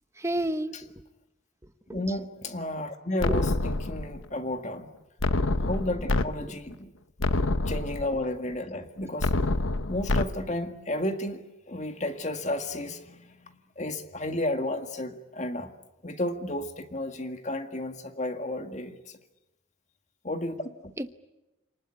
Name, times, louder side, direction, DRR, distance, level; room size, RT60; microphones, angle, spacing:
voice 1, 0.2-0.9 1.6-2.1 3.3-3.4 6.5-6.6 21.0-21.1, right 1 dB, 15° right, 11 dB, 1.0 m, -32 dB
voice 2, 1.9-4.9 5.6-6.9 7.7-9.6 9.9-15.7 16.0-19.2 20.2-20.6, left 1 dB, 35° left, 7 dB, 1.9 m, -32 dB
sound 1, 3.2-4.2 5.2-6.2 6.7-6.8 7.2-8.2 9.2-10.2, left 2 dB, 85° left, 1.1 m, -26 dB
28.5 x 19.5 x 10.0 m, 1.0 s
head